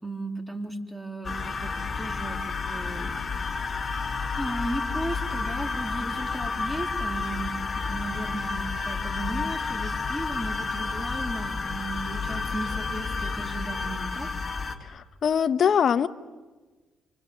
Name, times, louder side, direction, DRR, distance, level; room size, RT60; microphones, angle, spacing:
voice 1, 0.0-3.6 4.4-7.6 7.9-14.3, right 1 dB, 5° right, 3.2 m, -35 dB
sound 1, 1.2-14.8, left 4 dB, 35° left, 2.2 m, -31 dB
voice 2, 14.8-16.1, left 7 dB, 55° left, 0.9 m, -23 dB
28.5 x 24.5 x 7.8 m
cardioid pair, 90°, 0 cm